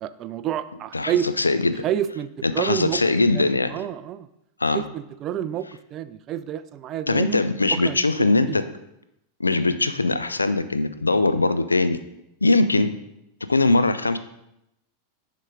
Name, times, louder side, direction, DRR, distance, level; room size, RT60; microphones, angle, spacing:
voice 1, 0.0-1.3 1.8-3.0 3.3-4.3 4.7-7.4 7.7-8.6, right 10 dB, 35° right, 14 dB, 0.3 m, -29 dB
voice 2, 1.4-1.8 2.6-3.7 4.6-4.8 7.1-8.6 9.4-12.0 12.4-12.9 13.5-14.2, left 3 dB, 80° left, 11 dB, 0.4 m, -21 dB
10.0 x 3.8 x 3.8 m, 0.83 s
figure-of-eight pair, 90°, 0 cm